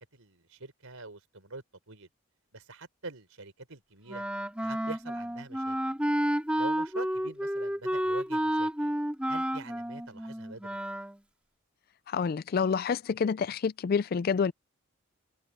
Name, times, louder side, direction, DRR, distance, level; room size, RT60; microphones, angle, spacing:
voice 1, 0.1-2.1 2.5-4.2 4.6-5.8 6.6-8.9 9.3-10.8, right 3 dB, 85° right, 4.1 m, -45 dB
Wind instrument woodwind instrument, 4.1-11.2, equal, 5° right, 2.5 m, -31 dB
voice 2, 12.1-14.5, left 6 dB, 45° left, 0.3 m, -28 dB
head